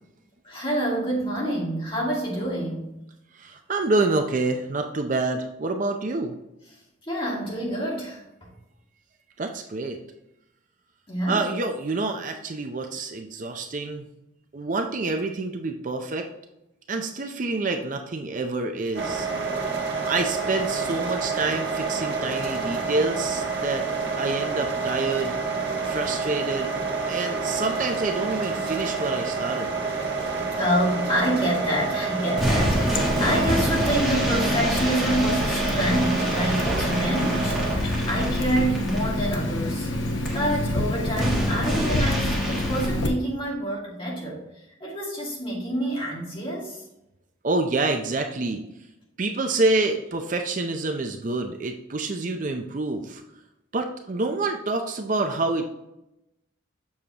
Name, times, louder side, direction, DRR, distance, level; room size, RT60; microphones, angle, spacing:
voice 1, 0.4-2.9 7.1-8.5 11.1-11.4 30.6-39.9 40.3-44.4 44.8-46.8, right 1 dB, 25° left, -4 dB, 2.1 m, -27 dB
voice 2, 3.3-6.3 9.4-10.0 11.3-14.1 14.5-16.3 16.9-19.3 20.0-23.9 24.2-25.4 25.8-26.7 27.1-29.7 40.0-40.1 47.4-48.6 49.2-53.2 53.7-55.7, right 3 dB, 40° right, 5 dB, 0.5 m, -27 dB
sound 1, 18.9-37.8, right 4 dB, 55° right, 1.3 m, -28 dB
sound 2, 30.1-31.2 31.4-31.6 32.4-39.2 40.2-40.5 41.1-42.9, equal, ahead, 1.5 m, -29 dB
Water tap faucet, 32.4-43.1, left 1 dB, 75° left, 0.9 m, -27 dB
7.1 x 6.3 x 2.9 m, 0.88 s
head